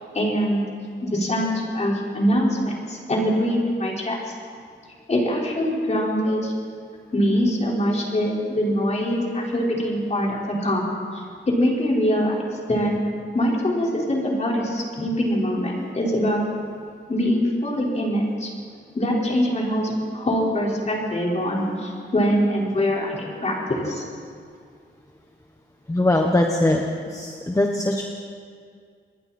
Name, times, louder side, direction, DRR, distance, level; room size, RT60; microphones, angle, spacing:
voice 1, 0.1-0.7 1.0-4.2 5.1-6.5 7.1-10.8 11.1-12.3 12.7-12.9 13.3-16.4 17.1-18.5 18.9-24.0, equal, 35° left, -3 dB, 5.0 m, -23 dB
voice 2, 25.9-28.0, left 1 dB, 15° left, 1 dB, 1.3 m, -21 dB
27.5 x 21.5 x 4.4 m, 2.2 s
wide cardioid pair, 125°, 19 cm